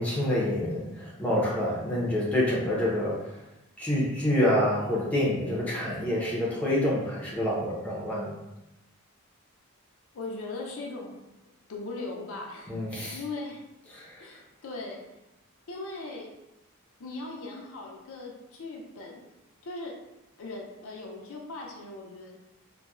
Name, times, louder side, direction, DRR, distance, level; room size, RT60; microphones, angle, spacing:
voice 1, 0.0-3.3 3.8-8.4 12.7-13.2 13.9-14.2, left 1 dB, 5° left, -6 dB, 0.7 m, -27 dB
voice 2, 10.1-11.1 11.7-12.7 13.1-13.6 14.2-15.0 15.7-16.3 17.0-19.2 19.6-20.0 20.4-22.4, left 2 dB, 65° left, -1 dB, 0.5 m, -39 dB
4.0 x 2.2 x 2.4 m, 0.96 s
head